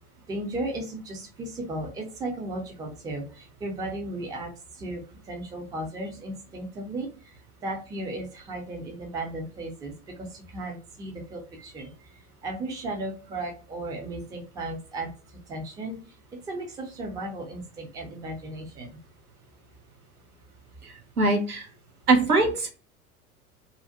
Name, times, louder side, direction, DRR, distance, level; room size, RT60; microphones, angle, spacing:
voice 1, 0.3-7.1 7.6-9.9 10.2-11.9 12.4-15.1 15.5-16.0 16.5-19.0, right 2 dB, 10° right, 1 dB, 0.4 m, -35 dB
voice 2, 20.8-21.7 22.1-22.7, right 3 dB, 85° right, 2 dB, 0.8 m, -22 dB
2.5 x 2.1 x 2.6 m, 0.36 s
figure-of-eight pair, 80°, 43 cm